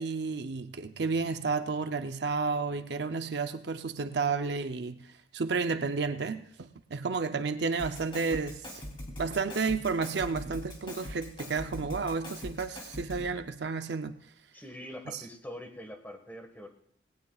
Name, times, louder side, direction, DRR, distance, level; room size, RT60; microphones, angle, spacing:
voice 1, 0.0-5.1 5.3-8.8 9.2-14.1, right 4 dB, 65° right, 0.6 m, -31 dB
Drum kit, 7.8-13.4, left 1 dB, 30° left, 3.1 m, -42 dB
voice 2, 14.5-16.7, left 1 dB, 10° left, 1.6 m, -44 dB
19.5 x 18.0 x 2.4 m
head